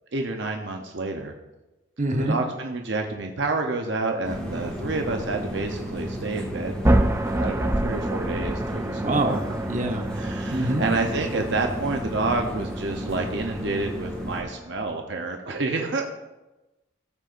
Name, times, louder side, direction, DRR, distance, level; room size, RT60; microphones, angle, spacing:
voice 1, 0.1-1.3 2.1-9.4 10.2-16.1, right 3 dB, 60° right, 3 dB, 0.8 m, -29 dB
voice 2, 2.0-2.4 9.0-10.1 10.5-10.8, right 2 dB, 40° right, 3 dB, 1.0 m, -25 dB
sound 1, 4.2-14.4, equal, 5° left, 1.6 m, -33 dB
sound 2, 6.8-14.8, right 1 dB, 15° right, 0.4 m, -28 dB
17.0 x 6.5 x 2.6 m, 1.0 s
head